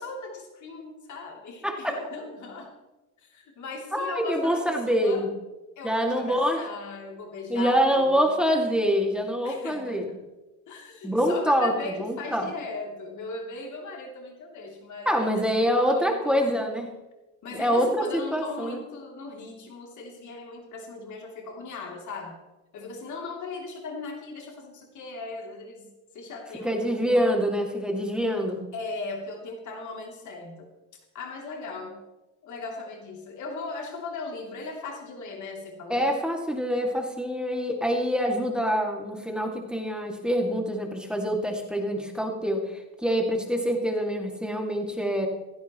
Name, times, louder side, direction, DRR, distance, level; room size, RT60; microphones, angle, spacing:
voice 1, 0.0-2.7 3.2-5.3 5.8-8.3 9.4-10.2 10.7-16.5 17.4-22.4 22.7-25.9 26.1-27.3 28.7-30.7 31.1-32.0 32.4-36.1, left 3 dB, 75° left, 1 dB, 3.1 m, -38 dB
voice 2, 1.6-1.9 3.9-5.3 5.8-6.6 7.5-10.1 11.0-12.5 15.1-16.9 17.5-18.0 18.3-18.8 26.6-28.6 35.9-45.3, equal, 5° right, 1 dB, 2.3 m, -25 dB
16.0 x 15.5 x 3.1 m, 1.1 s
cardioid pair, 90°, 30 cm